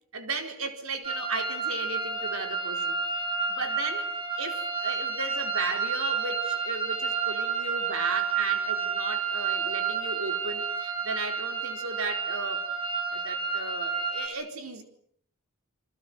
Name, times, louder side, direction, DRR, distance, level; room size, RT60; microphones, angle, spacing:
voice 1, 0.1-3.0 3.5-4.1 4.4-12.7 13.1-14.8, right 3 dB, 75° right, 4.5 m, -35 dB
sound 1, 1.0-14.3, right 5 dB, 25° right, 5.2 m, -30 dB
28.5 x 23.5 x 7.9 m
head